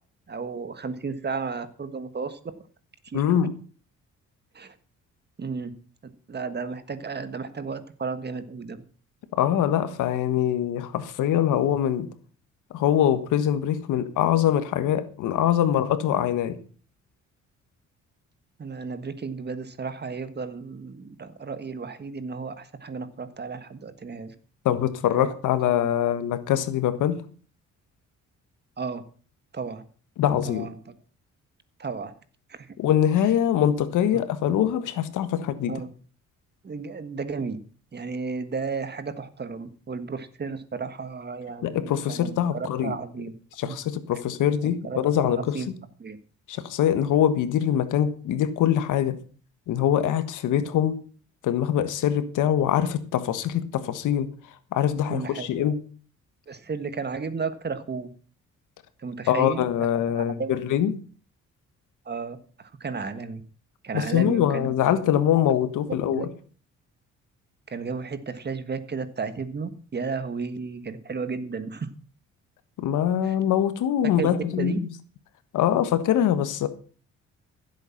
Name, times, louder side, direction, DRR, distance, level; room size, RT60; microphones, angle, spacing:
voice 1, 0.3-2.4 3.0-3.2 4.5-4.7 5.4-5.7 6.0-8.8 18.6-24.3 25.1-25.3 25.7-26.1 28.8-29.0 29.5-29.8 30.4-31.0 31.8-32.1 32.5-32.8 34.5-34.6 35.7-35.9 36.6-37.6 37.9-43.3 43.6-43.8 44.8-45.7 46.0-46.2 55.1-55.7 56.5-58.1 59.0-59.7 60.1-60.6 62.0-63.4 63.8-65.0 65.9-66.3 67.7-71.9 73.2-73.3 74.0-74.8, right 4 dB, 35° right, 1.6 m, -33 dB
voice 2, 3.1-3.5 9.3-12.1 12.7-16.6 24.6-27.2 30.2-30.7 32.8-35.7 41.6-42.9 43.6-45.6 46.5-49.2 49.7-51.0 51.4-54.3 54.7-55.8 59.3-60.9 63.9-66.3 72.8-74.9 75.5-76.7, left 10 dB, 85° left, 1.5 m, -23 dB
15.0 x 8.2 x 5.8 m
cardioid pair, 90°, 30 cm